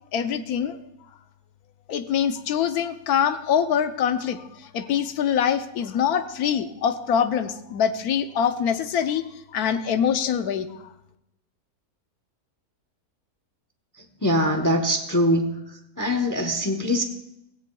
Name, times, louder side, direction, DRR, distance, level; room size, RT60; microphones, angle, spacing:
voice 1, 0.1-0.8 1.9-4.4 4.7-10.8, left 8 dB, 75° left, 9 dB, 1.2 m, -24 dB
voice 2, 14.2-15.5 16.0-17.0, equal, 20° left, 5 dB, 0.6 m, -22 dB
17.0 x 16.5 x 2.3 m, 0.84 s
omnidirectional pair, 1.6 m